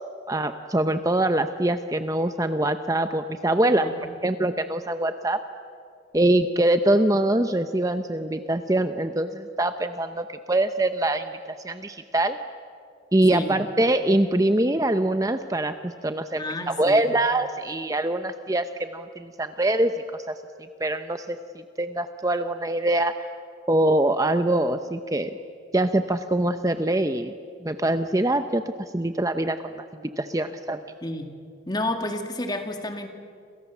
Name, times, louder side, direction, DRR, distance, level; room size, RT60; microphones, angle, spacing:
voice 1, 0.3-3.9 4.2-5.4 6.1-11.3 11.6-12.4 13.1-19.9 20.3-20.4 20.8-21.4 21.8-23.2 23.7-25.4 25.7-27.3 27.6-29.6 29.9-30.8, right 1 dB, 20° right, 9 dB, 0.7 m, -23 dB
voice 2, 3.8-4.1 13.3-13.6 16.4-17.1 31.0-31.3 31.7-33.1, left 1 dB, 20° left, 5 dB, 2.3 m, -30 dB
28.0 x 27.5 x 7.2 m, 2.3 s
head